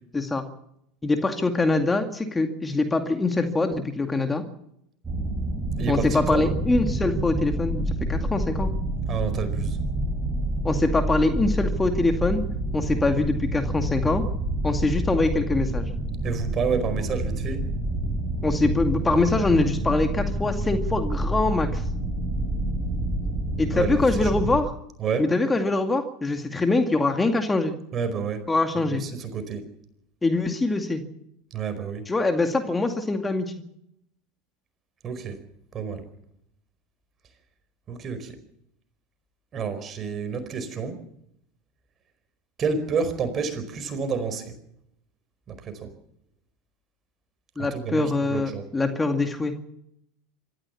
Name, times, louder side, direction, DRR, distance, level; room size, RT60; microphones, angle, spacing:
voice 1, 0.1-0.4 1.0-4.4 5.9-8.7 10.6-12.4 12.7-14.2 14.6-15.9 18.4-21.8 23.6-24.7 25.2-27.7 28.5-29.0 30.2-31.0 32.1-33.5 47.6-49.5, left 3 dB, 15° left, 6 dB, 2.3 m, -24 dB
sound 1, 5.0-24.6, right 1 dB, 15° right, 5.9 m, -28 dB
voice 2, 5.8-6.5 9.1-9.8 16.2-17.6 23.7-24.3 25.0-25.3 27.9-28.4 28.7-29.7 31.5-32.1 35.0-35.4 35.7-36.0 37.9-38.3 39.5-41.0 42.6-44.5 45.5-45.9 47.6-48.6, right 5 dB, 35° right, 10 dB, 4.8 m, -29 dB
25.5 x 14.0 x 7.2 m, 0.74 s
hypercardioid pair, 85°, 0 cm